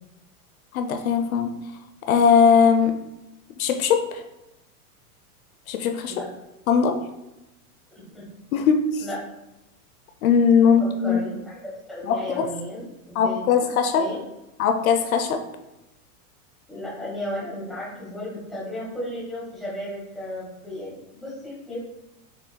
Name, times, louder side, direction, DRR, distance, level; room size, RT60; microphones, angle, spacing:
voice 1, 0.7-1.6 2.1-3.0 3.6-4.2 5.7-6.2 6.7-7.0 8.5-9.1 10.2-11.2 12.0-12.5 13.1-14.1 14.6-15.4, left 6 dB, 65° left, 6 dB, 0.6 m, -20 dB
voice 2, 10.8-13.4 14.0-14.2 16.7-21.8, left 1 dB, ahead, -8 dB, 1.1 m, -34 dB
6.2 x 3.7 x 2.2 m, 0.94 s
supercardioid pair, 170°, 46 cm